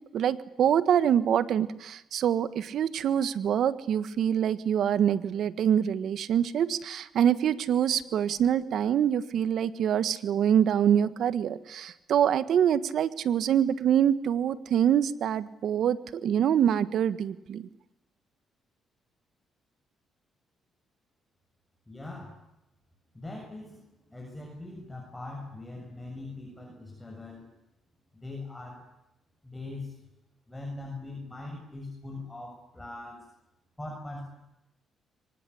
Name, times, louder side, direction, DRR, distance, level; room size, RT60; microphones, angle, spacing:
voice 1, 0.1-17.7, right 9 dB, 70° right, 15 dB, 1.4 m, -25 dB
voice 2, 21.9-22.4 23.1-27.5 28.1-28.9 29.4-30.0 30.5-33.3 33.8-34.2, left 2 dB, 10° left, 0 dB, 7.1 m, -41 dB
24.5 x 19.5 x 9.9 m, 0.92 s
cardioid pair, 90°, 0 cm